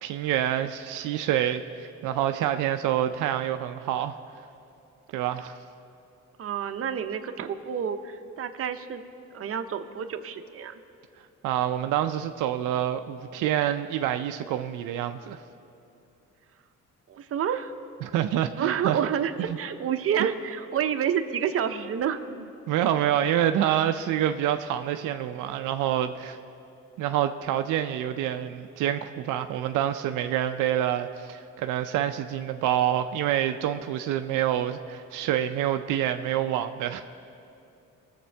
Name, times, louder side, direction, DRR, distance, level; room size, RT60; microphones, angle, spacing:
voice 1, 0.0-4.1 5.1-5.6 11.4-15.4 18.0-19.0 19.4-19.6 20.2-20.3 22.7-26.4 27.0-37.0, right 11 dB, 90° right, 8 dB, 0.5 m, -27 dB
voice 2, 6.4-9.0 9.3-10.8 17.1-17.7 18.6-22.2, right 8 dB, 50° right, 8 dB, 0.7 m, -29 dB
19.0 x 7.4 x 3.4 m, 2.6 s
cardioid pair, 90°, 30 cm